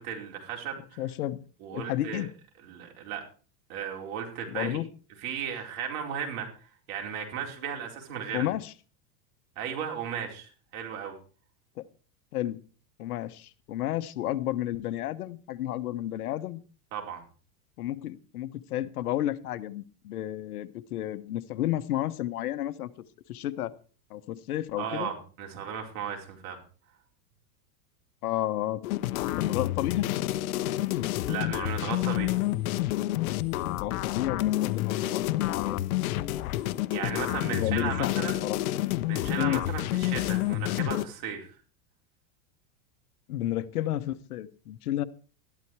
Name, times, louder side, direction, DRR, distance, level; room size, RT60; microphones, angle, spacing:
voice 1, 0.0-1.0 1.6-2.3 2.6-3.2 3.7-4.8 5.2-8.5 9.6-11.1 16.9-17.2 24.8-26.6 31.3-32.4 36.9-38.4 39.1-41.5, right 8 dB, 65° right, 2 dB, 4.8 m, -35 dB
voice 2, 1.0-1.4 1.7-2.3 4.5-4.9 8.3-8.7 11.8-11.9 12.3-12.6 13.0-16.6 17.8-22.9 23.3-23.7 24.1-25.1 28.2-28.8 29.2-30.1 33.6-35.9 37.5-38.6 39.4-39.7 43.3-45.0, left 13 dB, 85° left, 15 dB, 1.1 m, -31 dB
sound 1, 28.8-41.1, left 15 dB, 70° left, 1.0 m, -29 dB
13.5 x 12.0 x 4.7 m, 0.38 s
supercardioid pair, 130°, 44 cm